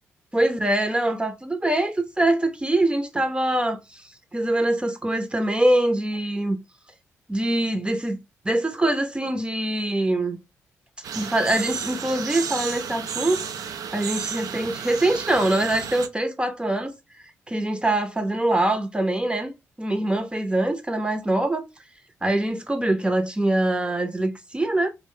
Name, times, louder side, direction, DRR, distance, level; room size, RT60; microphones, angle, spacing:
voice 1, 0.3-4.0 4.3-6.6 7.3-8.2 8.4-10.4 11.1-13.4 13.9-16.9 17.5-21.6 22.2-24.9, right 1 dB, 15° right, 0.6 m, -23 dB
sound 1, 11.0-16.1, right 7 dB, 60° right, 0.4 m, -32 dB
2.4 x 2.1 x 3.8 m
hypercardioid pair, 40°, 7 cm